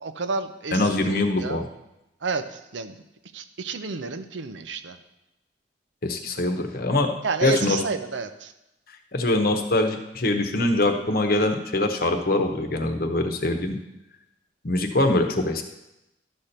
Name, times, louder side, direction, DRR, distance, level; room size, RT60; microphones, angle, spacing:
voice 1, 0.0-1.6 2.2-2.9 3.3-5.0 7.2-8.5, right 4 dB, 85° right, 9 dB, 0.7 m, -31 dB
voice 2, 0.7-1.7 6.0-7.1 7.4-7.8 9.1-13.8 14.6-15.6, left 2 dB, 55° left, 5 dB, 1.0 m, -23 dB
12.0 x 4.3 x 6.6 m, 0.92 s
head